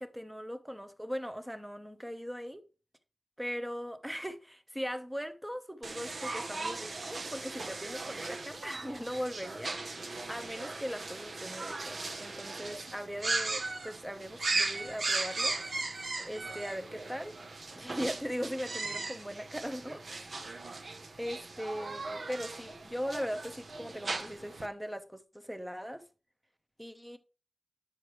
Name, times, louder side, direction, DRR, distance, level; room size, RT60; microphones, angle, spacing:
voice 1, 0.0-2.6 3.4-15.6 16.3-17.3 17.8-20.0 21.2-26.0 26.8-27.2, equal, 5° right, 0.9 m, -39 dB
sound 1, 5.8-24.7, right 3 dB, 65° right, 0.9 m, -38 dB
9.8 x 6.5 x 3.2 m
wide cardioid pair, 100°, 0 cm